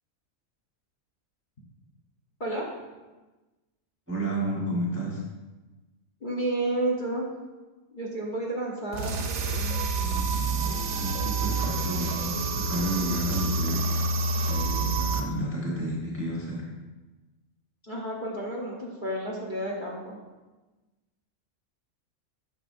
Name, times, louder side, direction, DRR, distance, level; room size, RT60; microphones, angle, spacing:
voice 1, 4.1-5.2 10.0-13.9 14.5-16.7, right 1 dB, 10° right, -4 dB, 1.0 m, -31 dB
voice 2, 6.2-7.2 7.9-9.1 17.9-20.2, right 1 dB, 35° left, -2 dB, 1.1 m, -31 dB
sound 1, 8.9-15.2, right 3 dB, 60° right, 0.8 m, -28 dB
8.7 x 6.0 x 2.6 m, 1.2 s
omnidirectional pair, 1.5 m